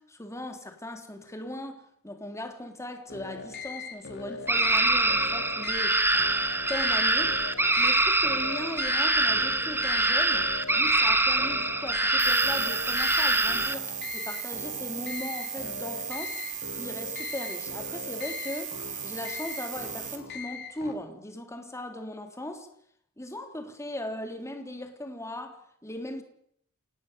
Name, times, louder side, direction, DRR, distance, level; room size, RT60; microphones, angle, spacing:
voice 1, 0.0-6.0 6.7-7.4 7.8-16.4 16.8-18.8 19.0-22.7 23.2-26.2, left 1 dB, 15° left, 3.5 m, -38 dB
sound 1, 3.1-20.9, left 5 dB, 50° left, 3.9 m, -40 dB
sound 2, 4.5-13.7, right 2 dB, 10° right, 1.4 m, -24 dB
sound 3, 12.2-20.2, right 8 dB, 35° right, 4.0 m, -37 dB
29.0 x 19.0 x 7.0 m
head